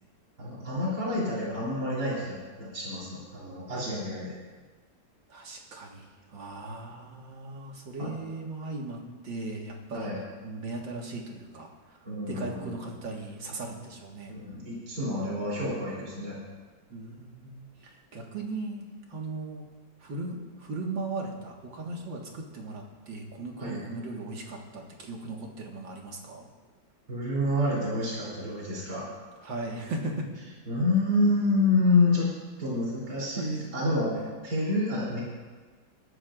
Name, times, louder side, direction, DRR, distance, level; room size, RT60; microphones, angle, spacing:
voice 1, 0.4-4.4 8.0-8.1 9.9-10.2 12.0-12.7 14.3-16.4 23.6-23.8 27.1-29.1 30.7-32.3 32.6-34.2 34.4-35.2, left 2 dB, 60° right, -6 dB, 4.1 m, -28 dB
voice 2, 5.3-10.1 10.4-14.3 16.9-19.6 20.0-26.5 29.4-30.3 33.4-33.7, right 2 dB, 80° right, 0 dB, 2.4 m, -38 dB
22.0 x 13.0 x 2.5 m, 1.4 s
omnidirectional pair, 2.0 m